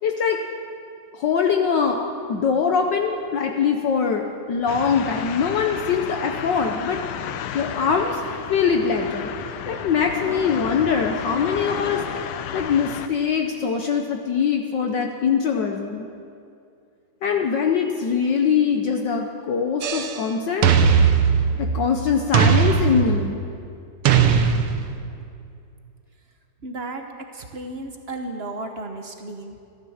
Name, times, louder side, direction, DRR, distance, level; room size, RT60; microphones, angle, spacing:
voice 1, 0.0-0.4 1.1-7.0 7.5-8.2 8.5-9.4 9.7-12.0 12.5-16.1 17.2-20.7 21.6-23.4, left 6 dB, 60° left, 3 dB, 1.4 m, -22 dB
sound 1, 4.7-13.1, left 9 dB, 80° left, 1.5 m, -33 dB
sound 2, 19.8-20.2 20.6-21.9 22.3-23.4 24.0-25.1, right 7 dB, 75° right, 1.7 m, -19 dB
voice 2, 26.6-27.0 27.3-29.6, right 2 dB, 45° right, 5 dB, 0.8 m, -34 dB
13.5 x 13.5 x 7.1 m, 2.5 s
omnidirectional pair, 2.4 m